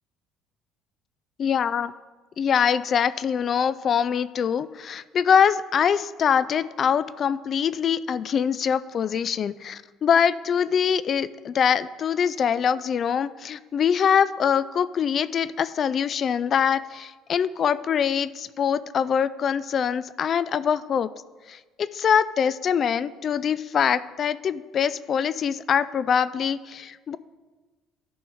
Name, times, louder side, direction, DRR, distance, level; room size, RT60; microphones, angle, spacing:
voice 1, 1.4-1.9 2.4-21.1 21.5-27.2, left 7 dB, 50° left, 17 dB, 0.3 m, -23 dB
13.0 x 5.4 x 4.7 m, 1.3 s
supercardioid pair, 90°, 0 cm